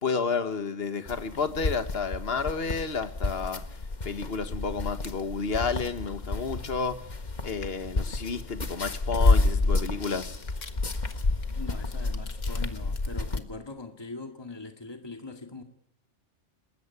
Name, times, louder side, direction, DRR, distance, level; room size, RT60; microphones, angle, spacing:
voice 1, 0.0-3.8 4.0-7.1 7.4-10.4, left 5 dB, 55° left, 1.7 m, -31 dB
sound 1, 1.1-13.4, left 3 dB, 35° left, 1.5 m, -29 dB
sound 2, 9.8-12.6 12.9-13.4, left 5 dB, 85° left, 1.9 m, -47 dB
voice 2, 11.6-15.6, left 3 dB, 20° left, 2.2 m, -41 dB
28.0 x 20.5 x 8.3 m
omnidirectional pair, 1.2 m